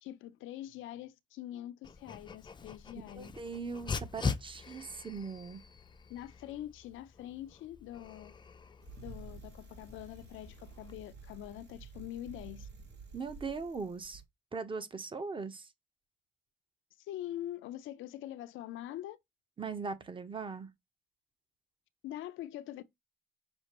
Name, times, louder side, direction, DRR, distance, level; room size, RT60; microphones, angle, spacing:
voice 1, 0.0-3.3 6.1-8.3 9.0-12.7 17.0-19.2 22.0-22.8, left 13 dB, 85° left, 0.5 m, -44 dB
Dog, 1.8-10.9, left 5 dB, 25° left, 0.5 m, -42 dB
voice 2, 3.2-5.6 13.1-14.2 14.5-15.7 19.6-20.7, right 4 dB, 25° right, 0.8 m, -40 dB
Bicycle, 8.8-14.2, right 4 dB, 60° right, 1.3 m, -51 dB
6.2 x 2.5 x 2.9 m
cardioid pair, 90°, 20 cm